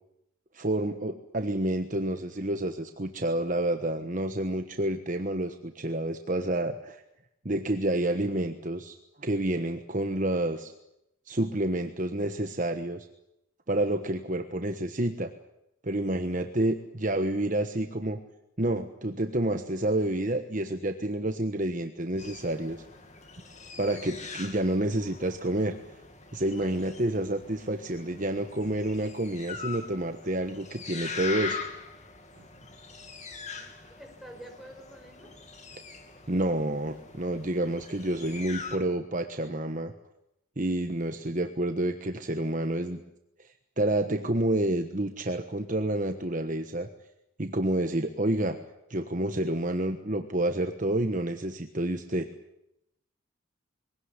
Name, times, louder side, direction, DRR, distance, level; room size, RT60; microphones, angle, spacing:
voice 1, 0.5-7.0 7.4-10.7 11.3-13.1 13.7-15.3 15.8-18.2 18.6-22.8 23.8-25.8 26.3-31.6 36.3-39.9 40.6-43.0 43.8-46.9 47.4-48.6 48.9-52.3, right 1 dB, 40° right, 7 dB, 1.3 m, -29 dB
sound 1, 22.2-38.8, left 4 dB, 35° left, 2.8 m, -42 dB
voice 2, 26.5-27.2 33.5-35.4, equal, ahead, 2 dB, 5.3 m, -49 dB
23.0 x 17.5 x 9.8 m, 0.84 s
head